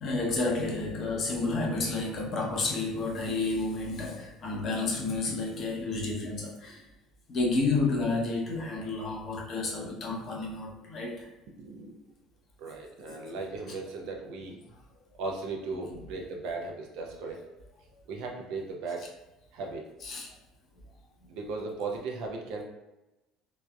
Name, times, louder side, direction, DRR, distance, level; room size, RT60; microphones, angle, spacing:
voice 1, 0.0-6.8 7.3-11.3 20.0-20.3, left 3 dB, 45° left, -1 dB, 0.7 m, -30 dB
voice 2, 11.6-12.1 12.6-14.6 15.2-17.4 18.1-19.1 19.5-19.9 21.3-22.6, right 3 dB, 65° right, 1 dB, 0.5 m, -37 dB
3.3 x 2.1 x 2.3 m, 0.98 s
hypercardioid pair, 60°, 0 cm